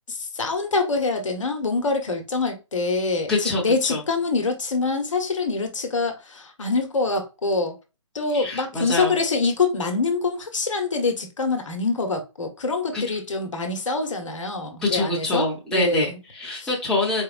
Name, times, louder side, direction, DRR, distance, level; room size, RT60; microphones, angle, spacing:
voice 1, 0.1-7.7 8.1-16.2 16.6-16.7, left 3 dB, 75° left, 1.0 m, -25 dB
voice 2, 3.3-3.6 3.9-4.0 8.3-9.1 12.9-13.2 14.8-17.2, left 2 dB, 5° left, 0.9 m, -25 dB
4.3 x 2.2 x 2.5 m
hypercardioid pair, 150°, 16 cm